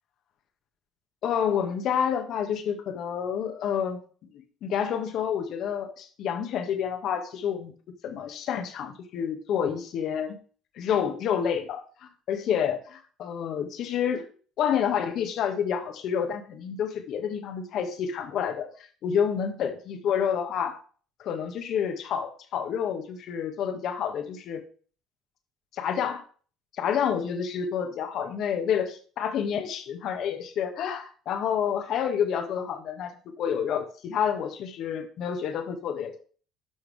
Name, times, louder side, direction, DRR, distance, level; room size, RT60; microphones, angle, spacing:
voice 1, 1.2-4.0 4.3-7.7 8.0-10.4 10.8-14.3 14.6-20.8 21.2-24.6 25.8-26.2 26.8-36.2, left 8 dB, 65° left, 6 dB, 1.8 m, -29 dB
12.5 x 5.8 x 3.6 m, 0.40 s
hypercardioid pair, 70°, 0 cm